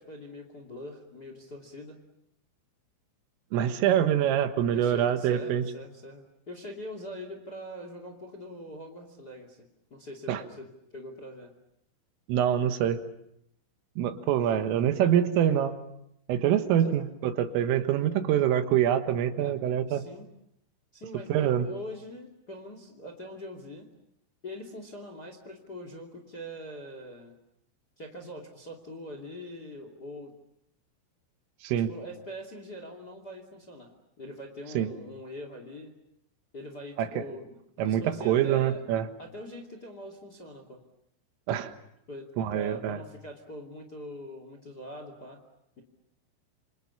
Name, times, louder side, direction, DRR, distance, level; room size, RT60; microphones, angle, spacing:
voice 1, 0.0-2.0 4.7-9.6 9.9-11.5 14.4-14.6 16.8-16.9 19.4-19.6 19.9-20.3 20.9-23.9 24.4-27.4 28.0-30.3 31.7-35.9 36.5-38.8 39.2-40.8 42.1-45.4, equal, 30° left, 5 dB, 2.0 m, -43 dB
voice 2, 3.5-5.6 10.3-10.4 12.3-13.0 14.0-15.7 16.3-20.0 21.3-21.7 31.6-31.9 34.8-34.9 37.0-37.1 37.8-39.1 41.5-41.7 42.4-43.0, right 10 dB, 80° right, 8 dB, 3.9 m, -25 dB
28.0 x 27.0 x 7.1 m, 0.76 s
omnidirectional pair, 6.0 m